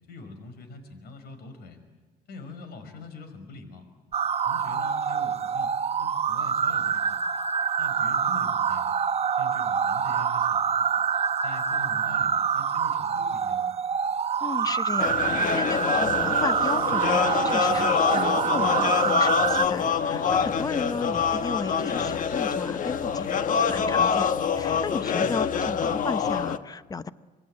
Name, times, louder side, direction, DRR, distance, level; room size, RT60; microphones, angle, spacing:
voice 1, 0.1-1.8 2.3-3.8 4.4-7.2 7.8-8.9 9.4-11.0 11.4-13.8 20.9-21.1 25.2-25.4, left 3 dB, 70° left, 8 dB, 5.5 m, -43 dB
sound 1, 4.1-19.7, right 7 dB, 35° right, 1.0 m, -26 dB
voice 2, 14.4-23.3 23.6-27.1, left 4 dB, 20° left, 13 dB, 1.0 m, -34 dB
sound 2, 15.0-26.6, left 7 dB, 50° left, 1.4 m, -25 dB
26.5 x 21.5 x 9.9 m, 1.3 s
cardioid pair, 110°, 17 cm